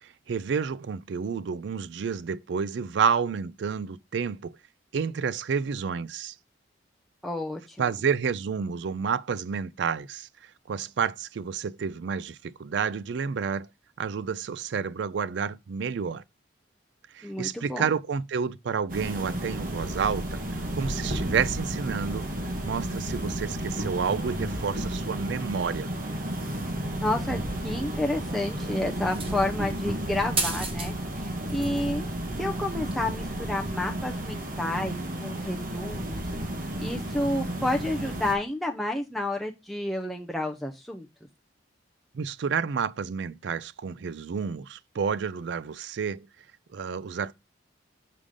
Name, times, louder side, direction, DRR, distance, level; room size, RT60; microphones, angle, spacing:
voice 1, 0.0-4.6 4.9-6.3 7.8-13.7 14.0-16.2 17.1-20.4 20.7-22.3 22.6-25.9 42.1-46.3 46.7-47.3, right 6 dB, 65° right, 0.4 m, -30 dB
voice 2, 7.2-7.8 17.2-17.9 27.0-27.4 27.6-32.0 32.4-36.2 36.8-41.1, left 1 dB, ahead, 0.5 m, -30 dB
sound 1, 18.9-38.3, right 1 dB, 45° right, 1.3 m, -32 dB
sound 2, 29.1-29.6 30.4-30.9 31.2-31.9 32.9-33.0, right 3 dB, 30° right, 1.1 m, -31 dB
6.6 x 5.0 x 3.6 m
head